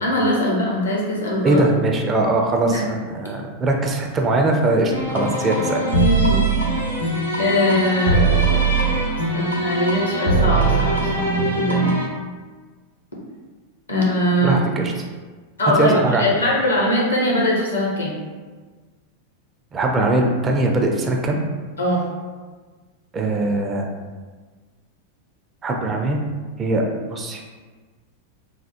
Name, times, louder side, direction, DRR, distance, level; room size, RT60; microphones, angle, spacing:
voice 1, 0.0-1.6 2.6-2.8 5.8-6.5 7.4-8.3 9.3-11.9 13.9-14.6 15.6-18.2 21.8-22.1, equal, 75° left, -3 dB, 0.8 m, -21 dB
voice 2, 1.4-5.8 14.4-14.9 15.8-16.3 19.7-21.4 23.1-23.9 25.6-26.2 26.6-26.8 27.1-27.4, right 2 dB, 20° right, 2 dB, 0.4 m, -21 dB
sound 1, 4.9-12.1, right 3 dB, 90° right, 0.6 m, -21 dB
3.3 x 2.1 x 2.8 m, 1.4 s
figure-of-eight pair, 90°, 0 cm